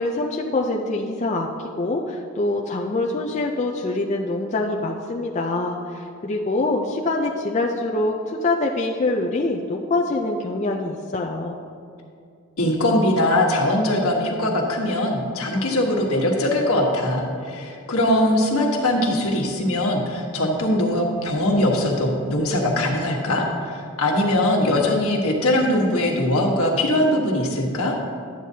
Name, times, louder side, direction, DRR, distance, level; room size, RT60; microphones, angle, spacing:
voice 1, 0.0-1.5 1.8-11.6, left 2 dB, 30° left, 0 dB, 0.4 m, -24 dB
voice 2, 12.6-27.9, left 1 dB, 80° left, -1 dB, 1.4 m, -21 dB
11.5 x 8.8 x 2.8 m, 2.4 s
head